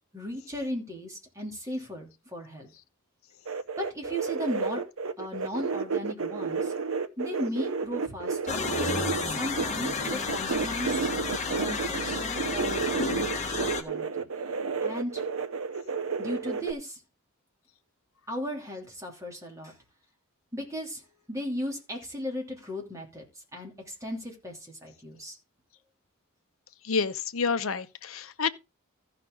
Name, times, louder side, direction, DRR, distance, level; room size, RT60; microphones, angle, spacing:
voice 1, 0.1-2.7 3.8-4.8 5.2-6.7 7.2-11.1 11.6-14.3 14.8-15.2 16.2-17.0 18.3-19.7 20.5-21.0 21.3-23.3 23.5-25.4, equal, 15° right, 2.9 m, -36 dB
sound 1, 3.5-16.7, right 5 dB, 70° right, 0.7 m, -31 dB
sound 2, 8.5-13.8, left 4 dB, 35° left, 1.3 m, -31 dB
voice 2, 26.8-28.5, left 5 dB, 70° left, 0.8 m, -29 dB
14.5 x 5.9 x 3.8 m
head